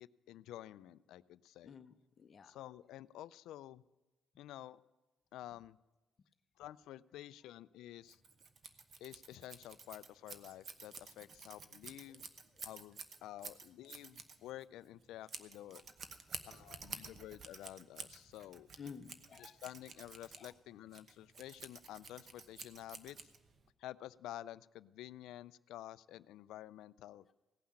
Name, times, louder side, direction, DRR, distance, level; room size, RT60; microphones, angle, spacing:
voice 1, 0.0-1.8 2.4-3.8 4.4-4.8 5.3-5.8 6.6-8.2 9.0-12.2 12.6-15.8 16.5-18.7 19.4-23.2 23.8-27.3, left 13 dB, 90° left, 18 dB, 0.3 m, -50 dB
voice 2, 1.6-2.5 18.8-19.6 20.3-20.5, left 6 dB, 45° left, 9 dB, 0.7 m, -52 dB
Scissors, 8.1-23.7, right 5 dB, 50° right, 1.0 m, -51 dB
17.0 x 5.7 x 8.5 m, 1.1 s
cardioid pair, 90°, 0 cm